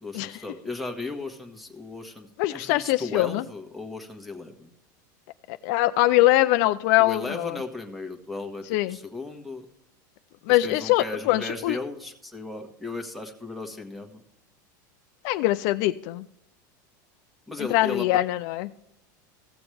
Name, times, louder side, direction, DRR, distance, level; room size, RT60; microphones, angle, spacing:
voice 1, 0.0-4.7 7.0-9.6 10.5-14.2 17.5-18.1, left 3 dB, ahead, 1 dB, 1.3 m, -36 dB
voice 2, 2.4-3.4 5.5-7.6 8.7-9.0 10.5-11.8 15.2-16.2 17.6-18.7, left 16 dB, 60° left, 12 dB, 0.4 m, -23 dB
15.5 x 7.0 x 3.3 m, 0.77 s
supercardioid pair, 135°, 10 cm